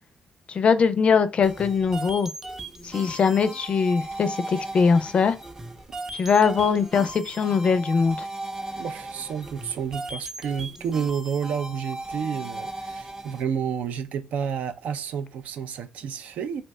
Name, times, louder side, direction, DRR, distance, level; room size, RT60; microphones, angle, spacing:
voice 1, 0.5-2.3 2.8-5.3 6.2-8.2, left 5 dB, 55° left, 0.4 m, -21 dB
sound 1, 1.4-13.4, right 2 dB, 20° right, 0.5 m, -37 dB
voice 2, 8.8-16.6, right 7 dB, 80° right, 0.3 m, -30 dB
2.7 x 2.2 x 3.0 m
cardioid pair, 75°, 2 cm